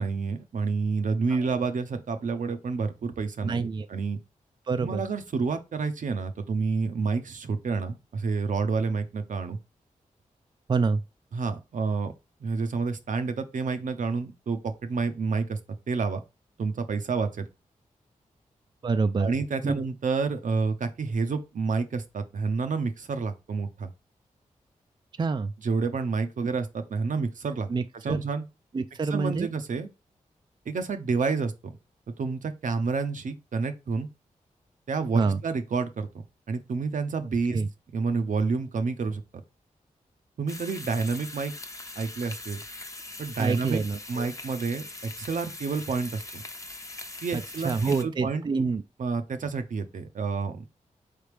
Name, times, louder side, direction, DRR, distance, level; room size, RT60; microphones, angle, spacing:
voice 1, 0.0-3.6 3.9-4.2 4.8-9.6 11.3-12.1 12.4-15.6 15.9-16.2 16.6-17.4 19.2-23.9 25.6-27.7 28.0-28.4 29.1-29.9 30.7-31.8 32.1-34.1 34.9-36.1 36.5-37.6 37.9-39.2 40.4-41.5 42.0-42.6 43.2-43.8 44.1-46.4 47.2-48.4 49.0-50.7, right 4 dB, 65° right, 0.7 m, -29 dB
voice 2, 3.4-3.9 4.7-5.0 10.7-11.0 18.8-19.3 19.6-19.8 25.2-25.5 27.7-28.2 28.7-29.5 35.1-35.4 37.5-37.7 43.4-44.3 47.6-48.8, right 4 dB, 35° right, 0.3 m, -27 dB
sound 1, 40.5-48.0, left 2 dB, 20° left, 0.7 m, -41 dB
4.2 x 3.3 x 3.3 m
cardioid pair, 45°, 14 cm